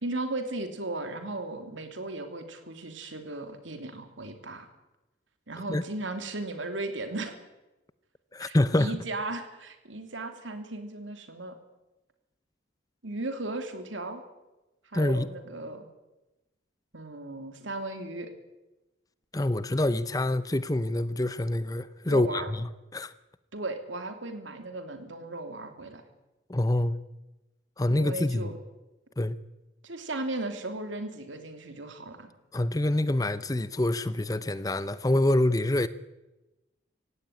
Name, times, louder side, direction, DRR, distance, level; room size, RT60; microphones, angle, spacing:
voice 1, 0.0-4.7 5.5-7.3 8.4-11.6 13.0-14.2 14.9-15.9 16.9-18.3 22.0-22.5 23.5-26.0 27.9-28.6 29.8-32.3, right 2 dB, 80° right, 2.9 m, -36 dB
voice 2, 8.3-8.9 14.9-15.3 19.3-23.1 26.5-27.0 27.8-28.5 29.2-29.4 32.5-35.9, left 1 dB, 20° left, 0.6 m, -26 dB
16.5 x 16.5 x 9.6 m
head